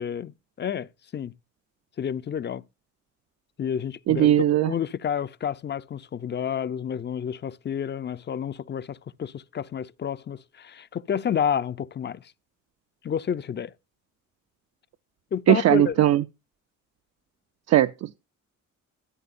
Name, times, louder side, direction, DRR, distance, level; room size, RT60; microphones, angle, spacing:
voice 1, 0.0-1.3 2.0-2.6 3.6-4.3 4.6-12.2 13.0-13.7 15.3-16.0, left 8 dB, 35° left, 0.5 m, -30 dB
voice 2, 4.1-4.7 15.5-16.2 17.7-18.2, right 12 dB, 60° right, 0.5 m, -19 dB
13.5 x 9.4 x 2.6 m
cardioid pair, 90°, 30 cm